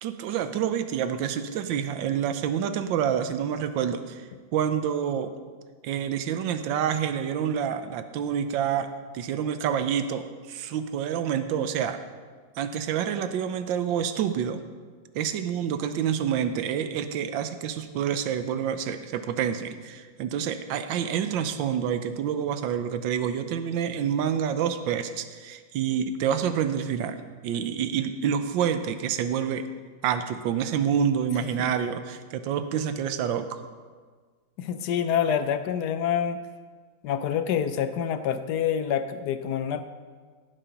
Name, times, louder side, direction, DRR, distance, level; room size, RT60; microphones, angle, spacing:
voice 1, 0.0-5.3 5.8-8.9 9.1-12.0 12.6-14.6 15.1-29.7 30.0-33.6, right 8 dB, 90° right, 10 dB, 1.4 m, -28 dB
voice 2, 34.6-36.4 37.0-39.8, left 8 dB, 70° left, 10 dB, 1.1 m, -26 dB
17.5 x 5.9 x 5.1 m, 1.5 s
omnidirectional pair, 2.0 m